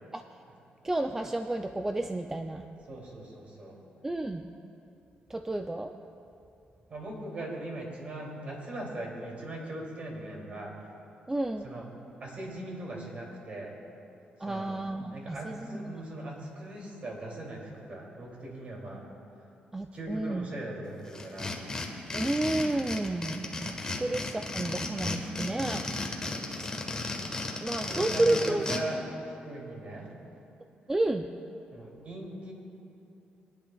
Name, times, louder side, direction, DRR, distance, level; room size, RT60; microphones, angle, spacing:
voice 1, 0.8-2.6 4.0-4.5 5.3-5.9 11.3-11.7 14.4-16.0 19.7-20.5 22.1-26.2 26.6-26.7 27.6-28.7 30.9-31.3, right 2 dB, 15° right, 6 dB, 0.4 m, -31 dB
voice 2, 2.9-3.8 6.9-10.7 11.6-11.9 12.2-13.7 14.4-14.7 15.1-19.0 19.9-21.6 26.2-26.5 27.8-30.1 31.7-32.5, right 1 dB, 45° right, -2 dB, 2.8 m, -40 dB
sound 1, 21.1-28.8, left 2 dB, 20° left, 1.3 m, -34 dB
24.0 x 10.5 x 2.3 m, 2.8 s
cardioid pair, 125°, 3 cm